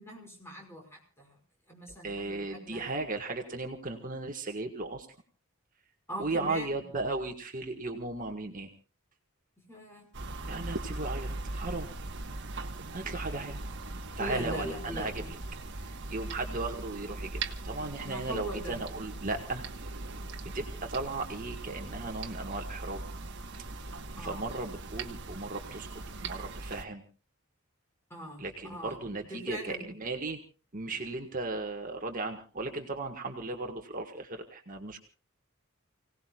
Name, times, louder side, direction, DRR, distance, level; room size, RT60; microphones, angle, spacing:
voice 1, 0.0-1.4 1.7-2.9 6.1-6.8 9.7-10.1 10.4-10.7 13.1-13.2 14.2-15.3 18.0-18.8 24.2-24.5 28.1-29.0 29.3-30.0, equal, 10° left, 1 dB, 5.7 m, -41 dB
voice 2, 2.0-5.1 6.2-8.7 10.5-11.9 12.9-13.6 14.2-15.2 16.1-19.6 20.4-23.0 24.2-25.9 26.2-27.0 28.4-30.4 30.7-35.0, right 3 dB, 40° right, 3 dB, 1.7 m, -36 dB
sound 1, 10.1-26.8, right 2 dB, 55° right, 1.5 m, -40 dB
30.0 x 18.0 x 2.5 m, 0.36 s
head